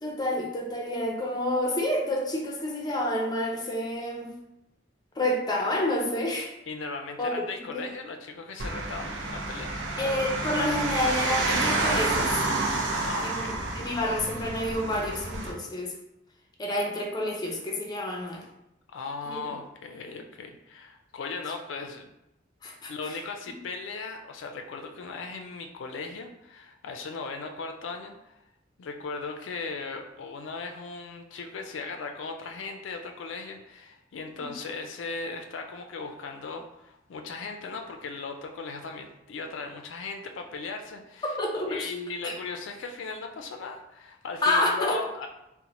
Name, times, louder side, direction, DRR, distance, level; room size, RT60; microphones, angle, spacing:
voice 1, 0.0-4.3 5.2-6.5 7.2-7.3 7.7-7.9 10.0-12.4 13.2-15.9 16.6-18.4 19.3-19.5 22.6-23.1 34.4-34.5 41.2-41.9 42.2-42.4 44.4-45.0, left 1 dB, 20° left, 1 dB, 0.5 m, -29 dB
voice 2, 6.7-9.8 12.9-13.6 18.9-22.1 22.9-28.4 28.8-41.4 41.7-45.3, left 4 dB, 80° left, 5 dB, 0.4 m, -37 dB
sound 1, 8.6-15.5, right 2 dB, 75° right, 0.6 m, -29 dB
2.9 x 2.1 x 4.0 m, 0.87 s
head